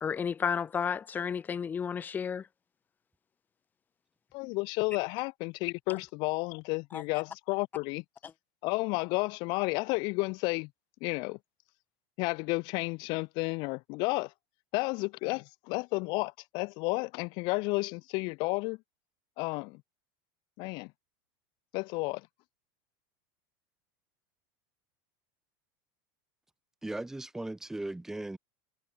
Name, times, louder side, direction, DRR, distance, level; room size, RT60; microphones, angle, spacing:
voice 1, 0.0-2.5 6.9-7.0 8.2-8.3, left 7 dB, 15° left, 2.0 m, -32 dB
voice 2, 4.3-8.0 8.6-10.7 11.0-11.4 12.2-14.3 14.7-18.8 19.4-19.8 20.6-20.9 21.7-22.2, left 27 dB, 40° left, 0.8 m, -32 dB
voice 3, 26.8-28.4, right 2 dB, 5° right, 4.2 m, -37 dB
supercardioid pair, 175°, 12 cm